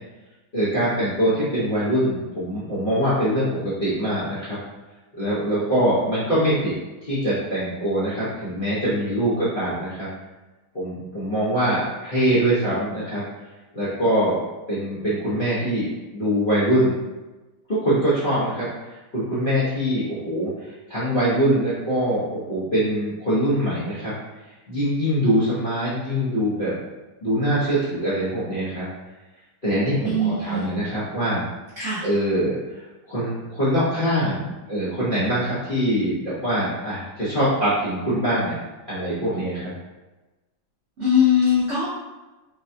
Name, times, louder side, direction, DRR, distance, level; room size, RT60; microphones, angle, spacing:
voice 1, 0.5-4.6 5.2-6.7 7.0-10.1 10.7-13.2 13.7-14.4 14.7-17.0 17.7-18.7 19.1-24.1 24.7-26.7 27.2-28.9 29.6-31.4 32.0-32.6 33.1-38.6 38.9-39.7, equal, 60° left, -12 dB, 0.5 m, -23 dB
voice 2, 30.0-30.7 31.8-32.1 41.0-41.9, left 5 dB, 85° right, -8 dB, 0.6 m, -21 dB
3.9 x 2.2 x 2.6 m, 1.1 s
omnidirectional pair, 2.2 m